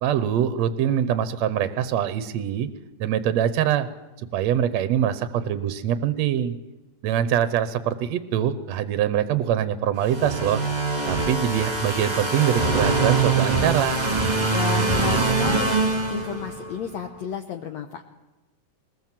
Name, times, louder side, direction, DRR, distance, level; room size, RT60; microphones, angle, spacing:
voice 1, 0.0-2.7 3.0-3.9 4.2-6.6 7.0-10.6 11.1-14.0, right 10 dB, 70° right, 12 dB, 1.7 m, -24 dB
sound 1, 10.1-16.7, right 3 dB, 15° right, 1.6 m, -23 dB
voice 2, 14.5-18.0, left 8 dB, 65° left, 5 dB, 1.9 m, -32 dB
21.0 x 20.0 x 7.5 m, 1.1 s
omnidirectional pair, 4.1 m